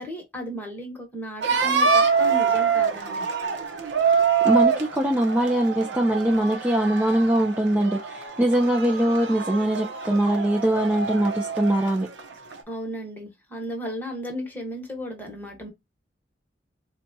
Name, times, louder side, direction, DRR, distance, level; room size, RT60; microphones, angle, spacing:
voice 1, 0.0-3.2 12.7-15.7, equal, 10° left, 1.1 m, -34 dB
sound 1, 1.4-12.6, right 6 dB, 75° right, 0.7 m, -25 dB
voice 2, 4.4-12.1, right 1 dB, 10° right, 0.4 m, -22 dB
4.1 x 2.2 x 2.6 m
head